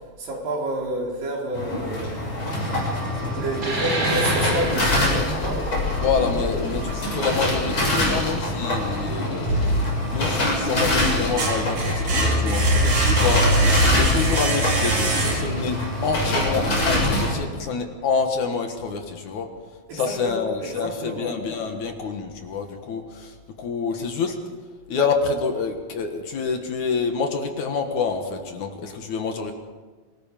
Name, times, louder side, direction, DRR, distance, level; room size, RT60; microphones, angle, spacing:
voice 1, 0.2-2.9 3.3-5.7 6.4-6.6 19.9-20.4 20.7-21.4, right 1 dB, 70° right, -1 dB, 5.4 m, -30 dB
sound 1, 1.5-17.3, left 1 dB, 35° left, 7.5 m, -25 dB
sound 2, 3.5-8.7, right 1 dB, 25° right, 5.5 m, -29 dB
voice 2, 6.0-13.5 13.9-19.5 19.9-24.4 24.9-29.5, left 5 dB, 60° left, 5 dB, 2.7 m, -27 dB
sound 3, 9.4-10.3 10.7-15.7, right 1 dB, 55° right, 5.8 m, -22 dB
26.5 x 19.0 x 5.3 m, 1.4 s
omnidirectional pair, 4.2 m